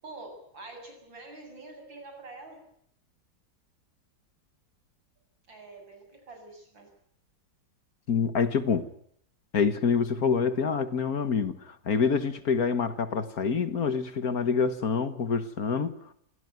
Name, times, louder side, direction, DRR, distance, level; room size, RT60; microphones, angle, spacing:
voice 1, 0.0-2.6 5.5-6.9, right 2 dB, 85° right, 7.8 m, -46 dB
voice 2, 8.1-8.9 9.5-16.0, left 6 dB, 55° left, 1.8 m, -26 dB
26.0 x 17.0 x 9.3 m
omnidirectional pair, 2.0 m